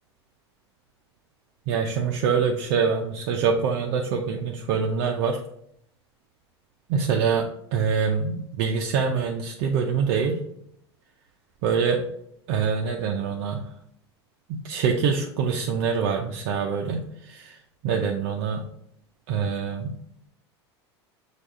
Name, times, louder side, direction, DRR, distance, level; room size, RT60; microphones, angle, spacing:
voice 1, 1.7-5.4 6.9-7.5 7.7-10.4 11.6-12.0 12.5-13.6 14.5-17.6 17.8-18.6 19.3-20.0, right 6 dB, 55° right, 2 dB, 0.5 m, -25 dB
6.0 x 2.4 x 3.5 m, 0.72 s
figure-of-eight pair, 80°, 14 cm